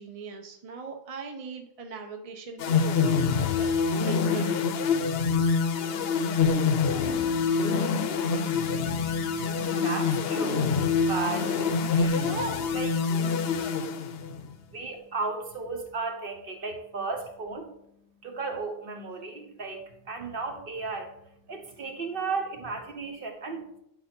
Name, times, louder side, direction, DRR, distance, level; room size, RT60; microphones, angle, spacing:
voice 1, 0.0-4.6 9.3-9.6, right 4 dB, 35° right, 4 dB, 0.7 m, -40 dB
sound 1, 2.6-14.5, left 5 dB, 65° left, 0.8 m, -26 dB
voice 2, 7.3-13.3 14.2-17.9 18.2-21.2 21.5-23.7, right 3 dB, 55° right, 4 dB, 1.2 m, -36 dB
9.7 x 4.1 x 4.4 m, 0.78 s
omnidirectional pair, 1.1 m